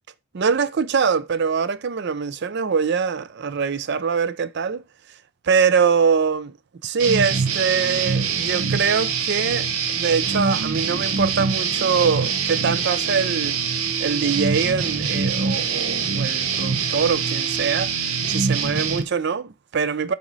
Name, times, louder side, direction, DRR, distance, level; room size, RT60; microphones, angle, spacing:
voice 1, 0.3-4.8 5.4-6.5 6.8-13.6 14.0-17.9 18.3-20.1, right 6 dB, 50° right, 0.4 m, -23 dB
sound 1, 7.0-19.0, right 5 dB, 75° right, 0.9 m, -24 dB
6.0 x 4.3 x 4.0 m
head